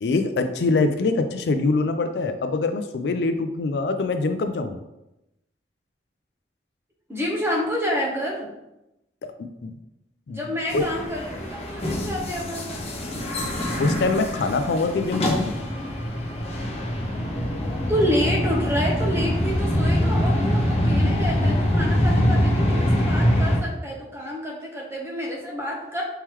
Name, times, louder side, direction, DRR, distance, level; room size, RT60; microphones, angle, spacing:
voice 1, 0.0-4.8 9.4-9.7 10.3-10.4 10.7-10.8 13.8-15.5, left 3 dB, 70° left, 8 dB, 0.4 m, -24 dB
voice 2, 7.1-8.5 10.3-12.6 17.9-26.0, equal, 15° right, -2 dB, 0.9 m, -28 dB
sound 1, 10.7-23.6, equal, 35° left, 0.7 m, -24 dB
4.4 x 3.7 x 3.0 m, 0.90 s
head